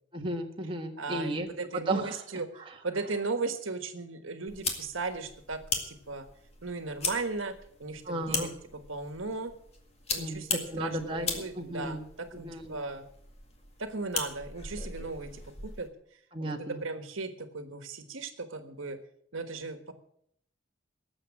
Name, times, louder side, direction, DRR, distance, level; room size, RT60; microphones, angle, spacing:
voice 1, 0.1-2.2 2.6-2.7 8.1-8.5 10.2-12.0 12.4-12.7 16.3-16.8, right 1 dB, 25° right, 1 dB, 1.5 m, -34 dB
voice 2, 1.0-2.5 2.8-6.3 6.6-8.5 8.9-9.5 10.1-13.1 13.8-15.9 16.4-19.0 19.3-19.9, right 3 dB, 80° right, 8 dB, 1.5 m, -37 dB
sound 1, 4.5-15.9, left 4 dB, 30° left, 2.0 m, -38 dB
18.5 x 7.4 x 7.3 m, 0.69 s
head